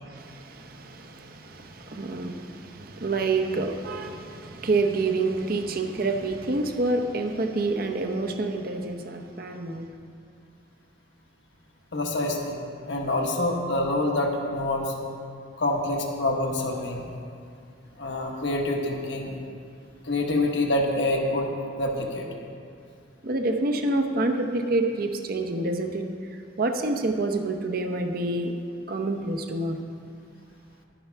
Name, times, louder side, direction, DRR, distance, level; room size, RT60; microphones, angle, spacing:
voice 1, 0.0-9.9 23.2-26.0 26.6-28.5 28.9-29.8, right 2 dB, 50° right, 4 dB, 0.7 m, -27 dB
voice 2, 11.9-12.6 12.9-14.9 15.6-17.0 18.0-19.3 20.0-21.5 21.8-22.3, left 2 dB, 70° left, 1 dB, 1.3 m, -26 dB
11.0 x 9.9 x 3.5 m, 2.4 s
head